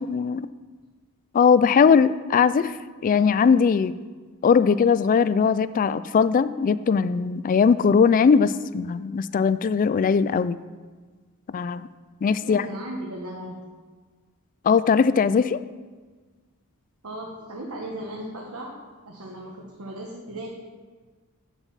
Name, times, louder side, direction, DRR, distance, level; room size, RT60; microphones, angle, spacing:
voice 1, 0.1-0.5 1.3-2.8 3.0-3.9 4.4-10.6 11.5-11.9 12.2-12.7 14.6-15.6, left 6 dB, 40° left, 15 dB, 0.3 m, -20 dB
voice 2, 12.4-13.6 17.0-18.8 19.0-20.5, right 1 dB, 70° right, -2 dB, 1.3 m, -36 dB
9.3 x 6.9 x 5.6 m, 1.4 s
head